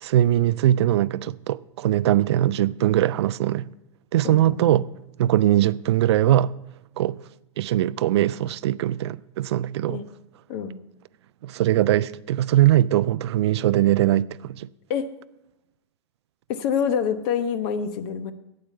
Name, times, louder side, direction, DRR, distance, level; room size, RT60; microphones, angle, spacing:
voice 1, 0.0-3.6 4.1-4.9 5.2-6.5 7.0-7.2 7.6-10.0 11.4-14.7, right 13 dB, 65° right, 0.4 m, -21 dB
voice 2, 4.2-4.8 9.9-10.0 10.5-10.8 14.9-15.1 16.5-18.3, left 7 dB, 50° left, 1.0 m, -26 dB
12.0 x 8.5 x 5.5 m
figure-of-eight pair, 95°, 15 cm